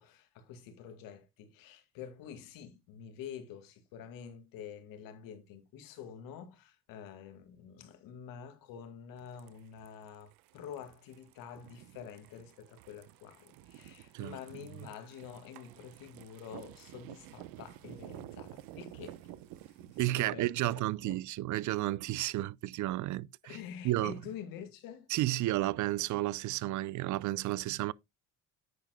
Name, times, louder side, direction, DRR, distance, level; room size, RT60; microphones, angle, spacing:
voice 1, 0.0-19.2 19.9-21.2 23.4-25.1, left 8 dB, 80° left, 2.2 m, -48 dB
sound 1, 9.2-20.0, right 14 dB, 85° right, 0.9 m, -51 dB
voice 2, 20.0-23.6 23.8-24.1 25.1-27.9, right 16 dB, 60° right, 0.5 m, -32 dB
9.4 x 9.1 x 2.2 m
cardioid pair, 95°, 34 cm